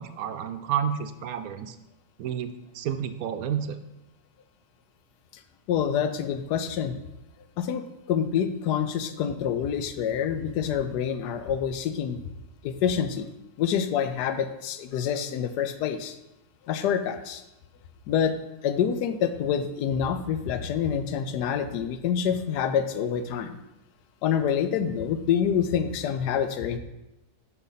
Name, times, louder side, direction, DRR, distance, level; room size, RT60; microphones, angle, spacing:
voice 1, 0.0-1.8 2.2-2.5 2.7-3.8, right 8 dB, 70° right, 9 dB, 1.0 m, -30 dB
voice 2, 5.7-7.0 7.6-12.2 12.6-13.3 13.6-16.2 16.6-17.4 18.1-18.4 18.6-23.6 24.2-26.8, left 8 dB, 85° left, 10 dB, 1.2 m, -27 dB
9.1 x 5.7 x 4.0 m, 0.93 s
omnidirectional pair, 1.7 m